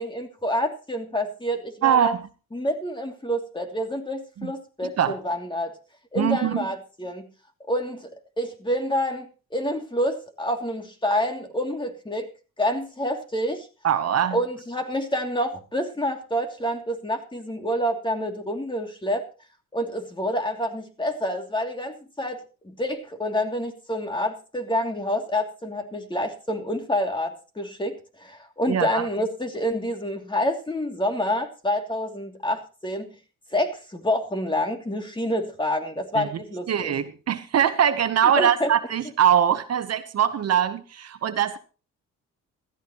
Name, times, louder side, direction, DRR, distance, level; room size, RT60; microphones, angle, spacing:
voice 1, 0.0-2.1 2.5-5.7 6.1-7.3 7.7-8.1 8.4-12.3 12.6-13.7 14.3-19.2 19.7-22.4 22.6-33.1 33.5-36.9 38.2-38.7, equal, 15° left, 4 dB, 2.8 m, -27 dB
voice 2, 1.8-2.2 4.4-4.5 4.8-5.2 6.2-6.7 13.8-14.4 28.7-29.1 36.1-36.3 36.7-41.6, right 9 dB, 55° right, 11 dB, 1.1 m, -22 dB
15.5 x 14.0 x 3.1 m, 0.36 s
cardioid pair, 90°, 30 cm